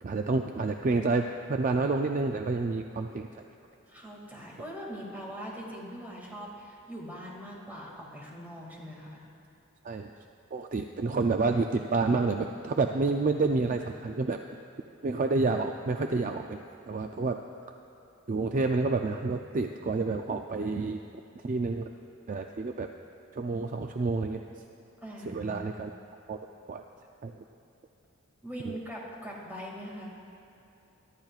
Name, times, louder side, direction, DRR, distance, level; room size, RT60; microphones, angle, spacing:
voice 1, 0.0-3.3 9.8-10.1 10.5-14.4 15.0-16.6 16.9-17.4 18.3-21.0 21.4-21.9 22.3-22.9 23.3-24.4 25.3-25.9 26.3-26.4 26.7-26.8 27.2-27.4, right 3 dB, 40° right, 4 dB, 0.4 m, -29 dB
voice 2, 3.9-9.2 25.0-25.8 28.4-30.1, equal, 10° right, -4 dB, 2.2 m, -42 dB
22.5 x 12.0 x 2.4 m, 2.9 s
head